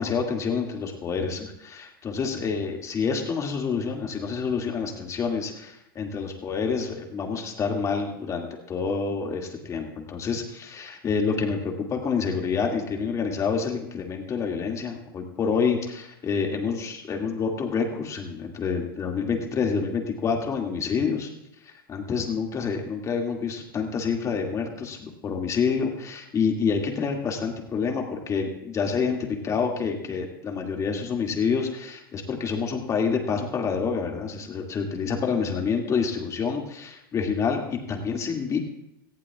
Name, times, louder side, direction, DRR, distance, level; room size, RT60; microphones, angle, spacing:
voice 1, 0.0-21.3 21.6-38.6, left 5 dB, 25° left, 1 dB, 2.3 m, -28 dB
18.0 x 15.0 x 2.4 m, 0.83 s
hypercardioid pair, 120°, 12 cm